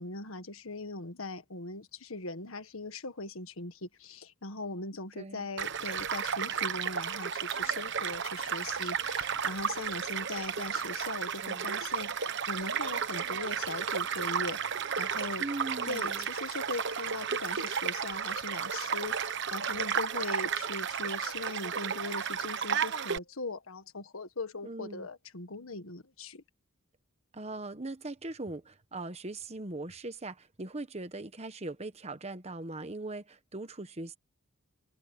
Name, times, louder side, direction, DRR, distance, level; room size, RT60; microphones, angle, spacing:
voice 1, 0.0-12.1 12.5-15.4 15.8-26.4, left 2 dB, 75° left, 1.6 m, -40 dB
voice 2, 5.1-5.5 11.4-11.7 15.4-16.3 24.6-25.1 27.3-34.2, right 2 dB, 30° right, 1.2 m, -40 dB
Child speech kid speaking / Stream / Car passing by, 5.6-23.2, right 7 dB, 55° right, 1.1 m, -33 dB
head